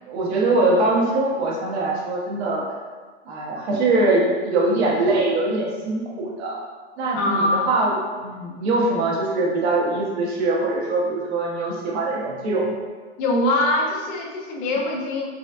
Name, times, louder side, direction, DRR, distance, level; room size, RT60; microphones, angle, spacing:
voice 1, 0.1-2.7 3.3-6.6 7.0-12.7, right 2 dB, 60° right, -2 dB, 1.0 m, -22 dB
voice 2, 7.2-7.7 13.2-15.3, left 1 dB, 40° left, 0 dB, 0.5 m, -22 dB
4.0 x 2.3 x 2.4 m, 1.4 s
hypercardioid pair, 120°, 36 cm